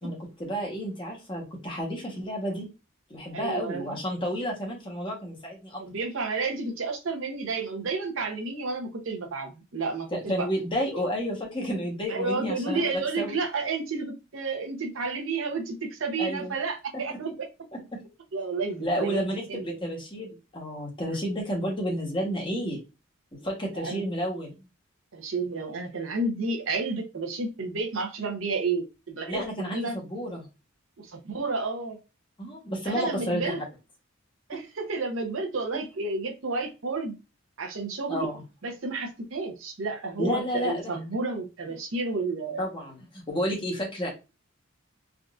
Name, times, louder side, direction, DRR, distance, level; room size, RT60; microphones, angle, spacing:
voice 1, 0.0-2.7 3.1-5.8 10.1-12.8 13.2-13.4 16.2-16.5 17.9-18.0 18.8-22.8 23.3-24.5 29.3-30.5 32.4-33.5 34.5-34.6 38.1-38.4 40.2-40.7 42.6-44.1, equal, 25° left, 1.0 m, -31 dB
voice 2, 3.3-4.0 5.8-10.5 12.1-17.5 18.3-19.8 23.7-24.0 25.1-30.0 31.0-32.0 32.8-33.6 34.5-37.2 37.6-38.3 38.6-42.7, right 3 dB, 75° right, 0.7 m, -31 dB
3.6 x 2.5 x 2.3 m
head